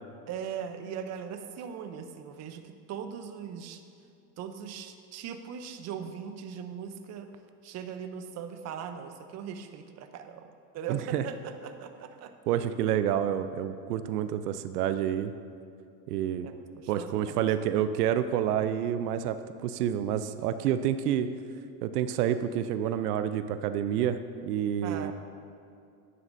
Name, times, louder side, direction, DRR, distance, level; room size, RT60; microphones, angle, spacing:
voice 1, 0.3-3.8 4.4-7.3 7.6-12.3 16.4-17.4 24.8-25.1, right 7 dB, 35° right, 8 dB, 0.7 m, -40 dB
voice 2, 10.9-11.2 12.5-15.3 16.1-16.5 16.9-21.3 21.8-24.2 24.4-25.1, right 10 dB, 90° right, 11 dB, 0.6 m, -28 dB
11.0 x 9.2 x 2.6 m, 2.5 s
supercardioid pair, 110°, 45 cm